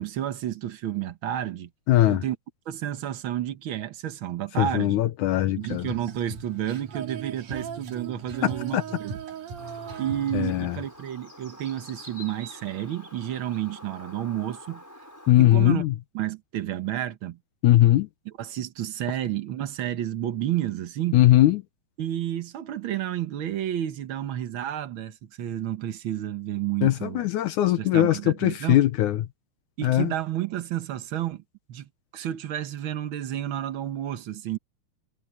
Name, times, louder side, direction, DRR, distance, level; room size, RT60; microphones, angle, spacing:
voice 1, 0.0-1.7 2.0-2.4 2.7-5.0 5.5-9.2 10.0-14.8 15.3-15.8 16.1-17.4 18.4-21.2 22.0-27.2 27.8-28.8 29.8-31.4 31.7-34.6, right 12 dB, 85° right, 1.1 m, -31 dB
voice 2, 1.9-2.2 4.6-5.9 8.4-8.8 10.3-10.8 15.3-15.9 17.6-18.1 21.1-21.6 26.8-29.2 29.8-30.1, left 14 dB, 75° left, 2.2 m, -20 dB
Female singing, 5.6-11.1, right 5 dB, 70° right, 3.8 m, -38 dB
Bird, 9.6-15.3, equal, 5° left, 5.3 m, -46 dB
omnidirectional pair, 3.8 m